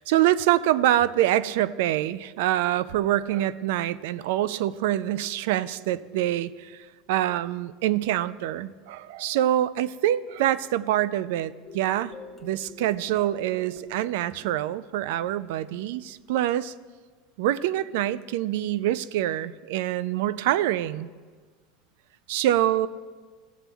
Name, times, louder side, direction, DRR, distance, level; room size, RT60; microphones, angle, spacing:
voice 1, 0.0-12.1 12.4-16.7 17.4-21.1 22.3-22.9, right 13 dB, 80° right, 18 dB, 0.4 m, -25 dB
sound 1, 11.6-16.1, left 3 dB, 15° left, 1.1 m, -48 dB
15.0 x 7.1 x 3.4 m, 1.5 s
supercardioid pair, 130°, 0 cm